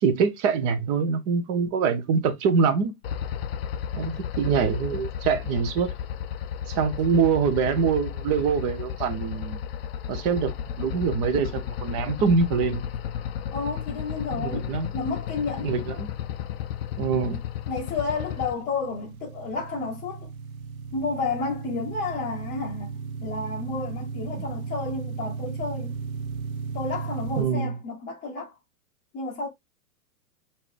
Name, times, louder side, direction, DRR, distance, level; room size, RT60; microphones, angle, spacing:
voice 1, 0.0-2.9 3.9-5.9 6.7-9.6 10.1-12.9 14.3-14.9 15.6-16.1 17.0-17.4 27.4-27.8, right 5 dB, 30° right, 0.8 m, -24 dB
sound 1, 3.0-18.5, left 9 dB, 40° left, 0.4 m, -33 dB
voice 2, 13.5-15.7 17.7-20.3 20.9-25.9 26.7-28.5 29.1-29.5, left 4 dB, 20° left, 0.9 m, -31 dB
sound 2, 16.6-27.4, right 5 dB, 60° right, 0.8 m, -36 dB
5.5 x 2.8 x 3.2 m
hypercardioid pair, 130°, 47 cm